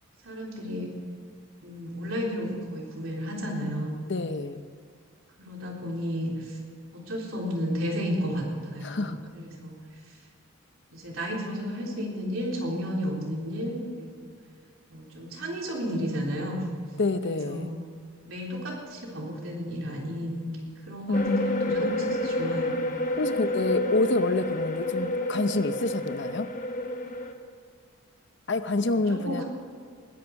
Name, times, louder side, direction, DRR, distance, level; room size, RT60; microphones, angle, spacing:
voice 1, 0.2-0.9 1.6-4.0 5.4-6.6 6.9-9.8 10.1-10.2 10.9-14.3 14.9-16.7 17.2-17.8 18.2-22.8 28.9-29.4, equal, 70° right, -2 dB, 3.7 m, -33 dB
voice 2, 4.1-4.6 8.8-9.2 17.0-17.7 21.1-21.8 23.2-26.5 28.5-29.4, left 3 dB, 55° left, 11 dB, 0.7 m, -27 dB
sound 1, 21.1-27.3, left 1 dB, 35° left, 1.2 m, -29 dB
20.0 x 10.5 x 4.8 m, 2.2 s
head